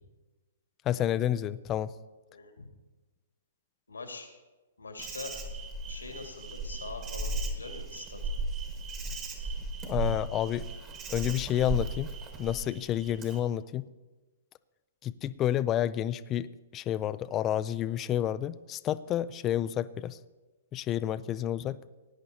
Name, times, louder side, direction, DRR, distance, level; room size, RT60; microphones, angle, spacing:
voice 1, 0.8-1.9 9.8-10.7 11.1-12.1 12.4-13.8 15.0-16.5 16.7-20.2 20.7-21.8, left 11 dB, 25° left, 16 dB, 0.4 m, -30 dB
voice 2, 2.3-2.7 3.9-4.3 4.8-5.3 5.9-8.2, left 3 dB, 85° left, 3 dB, 2.1 m, -43 dB
Insect, 5.0-13.4, right 2 dB, 25° right, 1.6 m, -36 dB
19.5 x 10.0 x 2.8 m, 1.2 s
figure-of-eight pair, 120°, 0 cm